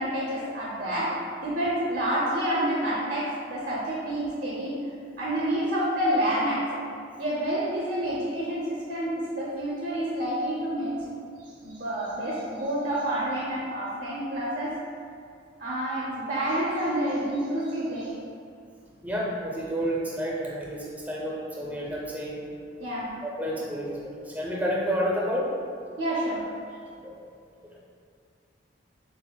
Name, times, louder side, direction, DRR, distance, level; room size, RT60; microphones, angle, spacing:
voice 1, 0.0-4.8 5.2-6.7 7.2-10.9 11.6-14.7 15.6-18.1 22.8-23.2 26.0-26.4, right 1 dB, 55° right, -7 dB, 0.6 m, -28 dB
voice 2, 19.0-22.5 23.2-25.5 26.7-27.1, equal, 10° right, -4 dB, 0.5 m, -30 dB
6.9 x 2.5 x 2.2 m, 2.3 s
head